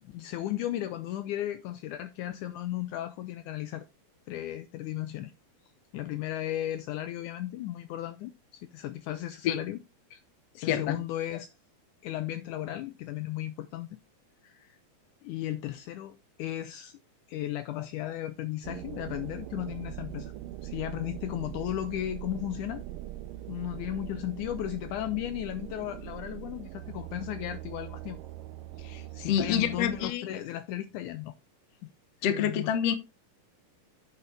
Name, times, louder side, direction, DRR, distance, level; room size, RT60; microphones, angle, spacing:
voice 1, 0.0-3.9 4.3-5.3 5.9-8.3 8.7-9.8 10.1-10.2 10.6-11.5 12.0-13.9 14.4-14.8 15.2-17.0 17.3-20.3 20.6-22.9 23.5-28.2 28.8-31.3 32.3-32.7, left 13 dB, 80° left, 1.9 m, -35 dB
voice 2, 10.7-11.0 28.9-30.3 32.2-32.9, left 9 dB, 60° left, 1.8 m, -27 dB
sound 1, 18.6-30.1, right 13 dB, 85° right, 2.2 m, -42 dB
9.2 x 6.9 x 3.3 m
omnidirectional pair, 3.8 m